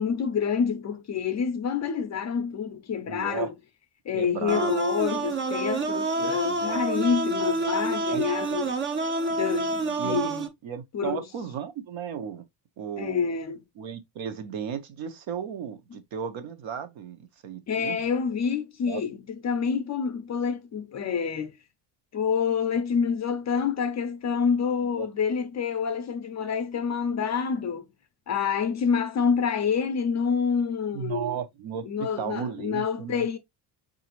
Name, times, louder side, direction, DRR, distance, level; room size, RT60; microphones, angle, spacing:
voice 1, 0.0-3.5 4.1-8.8 9.3-10.5 10.9-11.2 13.0-13.6 17.7-21.6 22.1-27.9 28.3-31.4 31.9-33.4, left 6 dB, 35° left, 0.4 m, -27 dB
voice 2, 3.1-3.5 4.1-4.8 6.4-6.8 8.1-8.2 10.0-10.3 10.6-12.4 12.8-13.4 13.8-18.0 18.9-19.0 25.0-25.1 30.9-31.8 32.2-33.3, right 8 dB, 70° right, 0.8 m, -35 dB
sound 1, 4.5-10.5, right 2 dB, 30° right, 0.3 m, -28 dB
4.9 x 2.5 x 2.9 m
cardioid pair, 155°, 48 cm